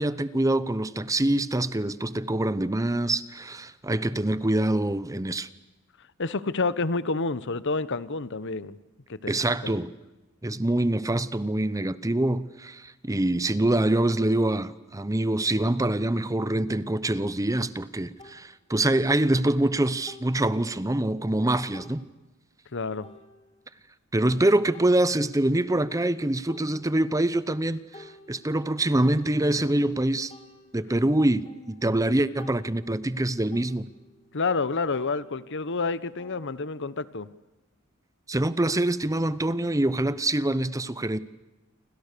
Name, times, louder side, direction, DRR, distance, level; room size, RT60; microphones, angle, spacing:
voice 1, 0.0-5.5 9.3-9.9 10.4-22.0 24.1-30.3 30.7-33.9 38.3-41.2, right 1 dB, 15° right, 0.9 m, -25 dB
voice 2, 6.2-8.8 9.1-9.3 9.6-9.8 22.7-23.1 34.3-37.3, left 3 dB, 60° left, 1.1 m, -29 dB
sound 1, 18.2-18.4 20.1-20.5 21.1-21.2 21.7-22.0 23.0-23.7 24.7-25.6 26.1-26.2 26.5-27.3 27.7-29.9 30.3-34.7 34.9-37.2, left 2 dB, 25° left, 2.7 m, -52 dB
29.0 x 25.5 x 6.8 m
head